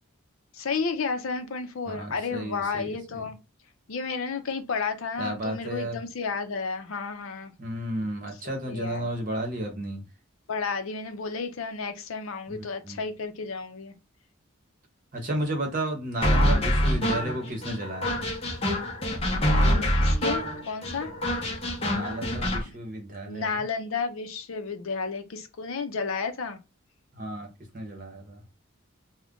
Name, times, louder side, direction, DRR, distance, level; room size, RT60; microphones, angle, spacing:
voice 1, 0.5-3.4 3.9-7.5 8.7-9.1 10.5-13.9 19.4-21.1 23.2-26.6, left 5 dB, 75° left, 0.5 m, -32 dB
voice 2, 1.9-3.2 5.2-6.0 7.6-10.0 12.5-13.0 15.1-18.3 21.9-23.6 27.1-27.5 27.7-28.4, right 1 dB, 40° right, 0.8 m, -33 dB
sound 1, 16.2-22.6, equal, 25° left, 0.7 m, -25 dB
2.4 x 2.1 x 3.5 m
head